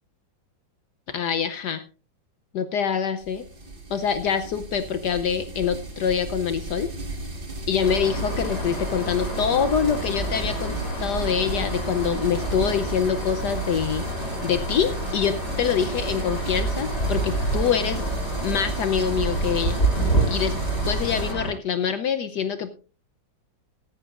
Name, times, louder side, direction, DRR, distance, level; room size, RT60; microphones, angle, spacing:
voice 1, 1.1-1.8 2.5-3.4 3.9-6.9 7.7-14.0 14.4-18.0 18.4-19.8 20.3-20.6 20.9-22.7, left 7 dB, 65° left, 10 dB, 1.2 m, -25 dB
sound 1, 3.2-21.3, right 2 dB, 30° right, 1.7 m, -34 dB
sound 2, 7.8-21.5, right 2 dB, 35° left, 8.2 m, -28 dB
16.5 x 14.0 x 2.5 m, 0.34 s
omnidirectional pair, 2.1 m